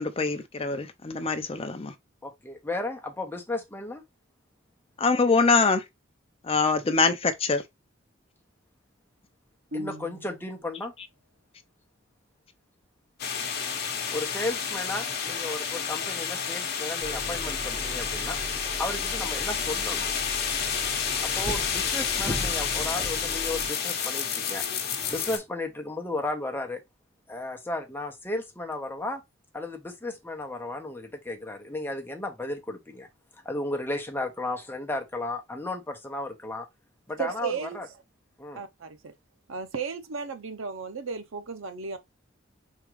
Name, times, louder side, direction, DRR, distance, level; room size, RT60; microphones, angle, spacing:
voice 1, 0.0-1.9 5.0-5.8 6.5-7.6, left 4 dB, 30° left, 0.6 m, -24 dB
voice 2, 2.2-4.0 9.7-10.9 14.1-18.4 18.8-20.1 21.2-24.6 25.1-26.8 27.3-29.2 29.5-33.1 33.4-36.6 37.1-37.9 38.4-38.6, left 2 dB, 10° left, 0.9 m, -34 dB
sound 1, 9.7-10.7, left 1 dB, 60° right, 1.4 m, -38 dB
sound 2, 13.2-25.4, left 7 dB, 50° left, 1.0 m, -30 dB
sound 3, 17.0-23.7, equal, 30° right, 2.7 m, -38 dB
voice 3, 37.2-37.8 38.5-39.1 39.5-42.0, right 6 dB, 80° right, 0.7 m, -34 dB
4.5 x 3.7 x 3.1 m
head